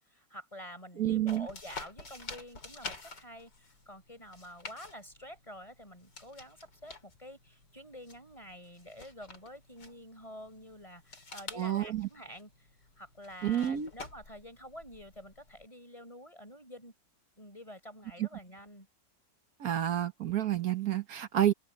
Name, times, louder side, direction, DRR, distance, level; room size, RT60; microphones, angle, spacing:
voice 1, 0.0-12.7 13.0-16.9 17.4-18.9, equal, 20° left, 6.1 m, -49 dB
voice 2, 1.0-1.5 11.5-12.1 13.4-13.9 18.2-18.3 19.6-21.5, right 11 dB, 60° right, 1.6 m, -29 dB
sound 1, 1.3-15.7, left 4 dB, 80° left, 4.6 m, -50 dB
omnidirectional pair, 1.8 m